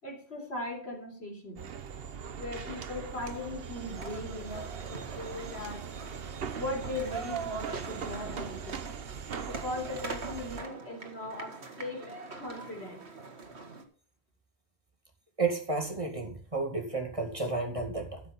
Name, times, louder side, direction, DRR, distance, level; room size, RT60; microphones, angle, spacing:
voice 1, 0.0-1.7 2.4-5.9 6.6-8.8 9.5-13.0, left 2 dB, 75° left, 1 dB, 4.3 m, -39 dB
sound 1, 1.6-10.6, right 7 dB, 65° right, 1.1 m, -40 dB
sound 2, 3.9-13.8, right 3 dB, 85° right, 2.0 m, -44 dB
voice 2, 15.4-18.2, right 3 dB, 30° right, 2 dB, 2.4 m, -32 dB
12.5 x 7.5 x 5.5 m, 0.43 s
omnidirectional pair, 1.1 m